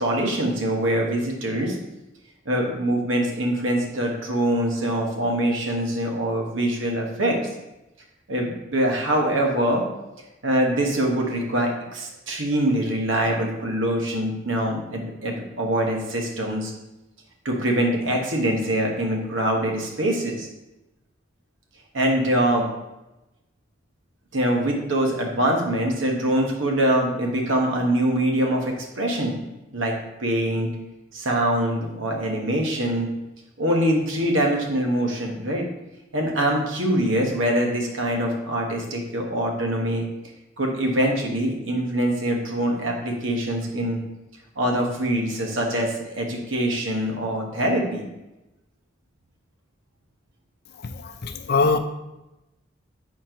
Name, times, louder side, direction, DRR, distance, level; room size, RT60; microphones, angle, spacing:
voice 1, 0.0-1.8 2.4-7.4 8.3-9.8 10.4-16.7 17.4-20.5 21.9-22.7 24.3-29.4 29.7-30.7 31.1-33.1 33.6-35.6 36.1-40.1 40.6-44.0 44.6-48.0, right 1 dB, 80° right, 1 dB, 1.2 m, -24 dB
voice 2, 51.2-51.8, left 4 dB, 55° left, 8 dB, 0.5 m, -21 dB
4.4 x 4.3 x 5.0 m, 0.97 s
head